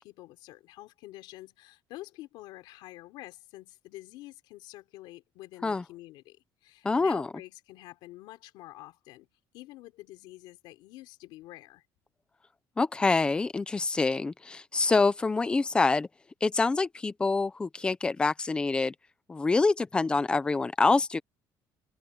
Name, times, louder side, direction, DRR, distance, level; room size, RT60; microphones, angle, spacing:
voice 1, 0.0-9.3 9.5-11.8, left 17 dB, 75° left, 3.4 m, -48 dB
voice 2, 6.8-7.3 12.8-16.1 16.4-18.9 19.3-21.2, left 3 dB, 10° left, 0.8 m, -26 dB
cardioid pair, 175°, 8 cm